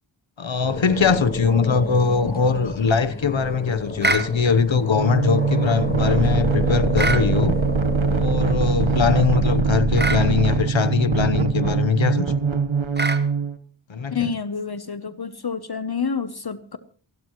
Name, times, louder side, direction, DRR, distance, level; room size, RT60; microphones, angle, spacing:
voice 1, 0.4-7.5 8.2-12.3 13.9-14.3, left 5 dB, 75° left, 1.0 m, -21 dB
sound 1, 0.6-9.6, left 2 dB, 20° left, 2.7 m, -32 dB
sound 2, 4.0-4.3 7.0-7.3 10.0-10.3 13.0-13.3, right 2 dB, 20° right, 1.1 m, -23 dB
sound 3, 4.9-13.6, right 4 dB, 85° right, 1.2 m, -22 dB
voice 2, 14.1-16.8, left 6 dB, 55° left, 0.9 m, -28 dB
27.5 x 12.5 x 3.0 m
wide cardioid pair, 50°, 46 cm